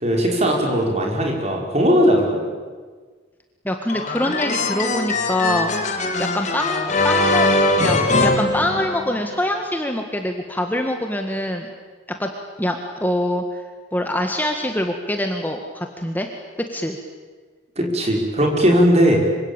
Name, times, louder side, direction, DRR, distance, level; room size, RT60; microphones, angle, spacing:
voice 1, 0.0-2.4 17.8-19.2, equal, 35° right, 1 dB, 5.7 m, -18 dB
voice 2, 3.7-5.7 6.2-11.7 12.2-12.3 12.6-13.4 13.9-16.3 16.7-17.0, left 1 dB, 10° left, 4 dB, 1.6 m, -24 dB
sound 1, 3.9-9.3, left 2 dB, 35° left, 2.7 m, -21 dB
26.0 x 25.5 x 9.0 m, 1.5 s
head